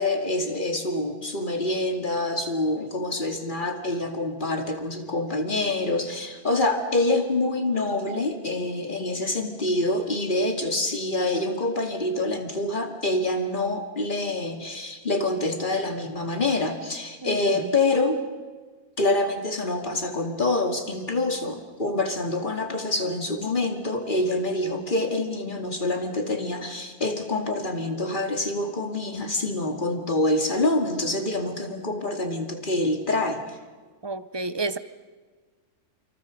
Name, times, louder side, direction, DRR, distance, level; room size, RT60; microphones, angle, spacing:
voice 1, 0.0-18.2 19.0-33.6, left 2 dB, 30° left, 5 dB, 2.6 m, -26 dB
voice 2, 17.2-17.7 34.0-34.8, right 3 dB, 35° right, 14 dB, 0.4 m, -31 dB
28.0 x 27.0 x 5.2 m, 1.4 s
omnidirectional pair, 1.6 m